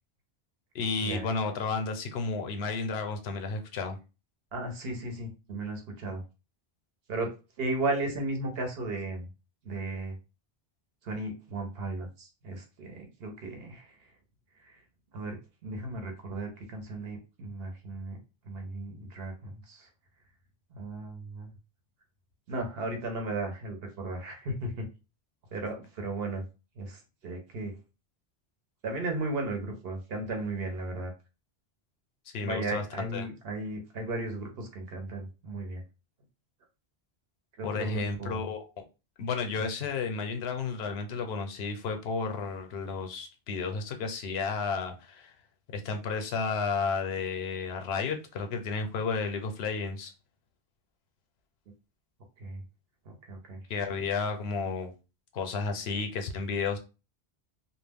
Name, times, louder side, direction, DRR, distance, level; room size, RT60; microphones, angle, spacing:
voice 1, 0.7-4.0 32.3-32.8 33.1-33.3 37.6-38.7 39.2-45.3 45.7-50.1 53.7-54.9 55.3-56.8, left 4 dB, 85° left, 5 dB, 0.8 m, -32 dB
voice 2, 4.5-6.2 7.1-7.3 7.6-9.2 9.6-10.2 11.0-14.0 14.6-14.8 15.1-18.2 18.4-19.9 20.7-21.5 22.5-24.9 25.5-26.4 26.8-27.8 28.8-31.1 32.4-35.8 37.6-38.4 52.4-52.6 53.1-53.6, right 2 dB, 70° right, 3 dB, 1.0 m, -35 dB
2.3 x 2.0 x 3.4 m, 0.30 s
omnidirectional pair, 1.0 m